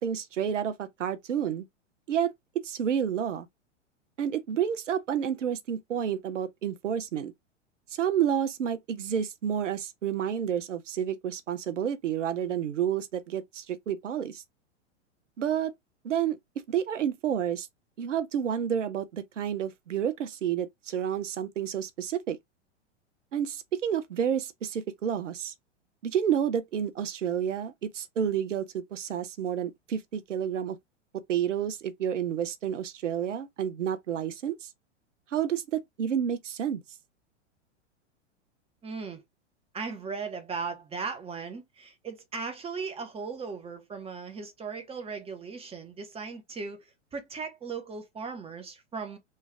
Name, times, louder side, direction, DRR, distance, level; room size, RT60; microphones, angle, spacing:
voice 1, 0.0-1.7 2.1-2.3 2.6-3.5 4.2-7.3 7.9-14.4 15.4-15.7 16.0-16.4 16.7-17.7 18.0-22.4 23.3-25.5 26.0-30.8 31.3-34.7 35.3-36.8, right 9 dB, 85° right, 0.6 m, -30 dB
voice 2, 38.8-39.2 39.7-49.2, right 5 dB, 15° right, 0.8 m, -37 dB
3.2 x 2.3 x 3.2 m
hypercardioid pair, 105°, 36 cm